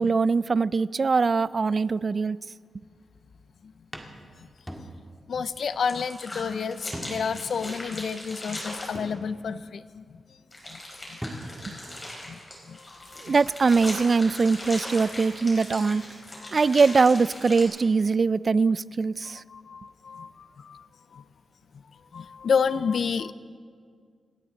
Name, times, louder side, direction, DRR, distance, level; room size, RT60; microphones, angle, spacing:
voice 1, 0.0-2.4 13.2-16.0 16.5-19.4, right 4 dB, 45° right, 19 dB, 0.3 m, -22 dB
sound 1, 3.1-3.4 3.9-5.3 5.6-5.7 6.9-7.5 7.9-8.0 8.9-9.7 10.9-11.0 11.2-11.8, equal, ahead, 1.9 m, -40 dB
voice 2, 5.3-10.2 10.7-10.8 11.1-11.2 11.7-11.8 12.3-12.4 12.7-12.8 13.1-13.4 15.8-16.0 19.5-20.9 21.1-21.2 22.1-23.3, left 6 dB, 70° left, 15 dB, 0.5 m, -30 dB
sound 2, 5.6-8.9 10.5-17.6, left 1 dB, 25° left, 5.1 m, -39 dB
28.0 x 12.5 x 4.0 m, 2.1 s
cardioid pair, 90°, 0 cm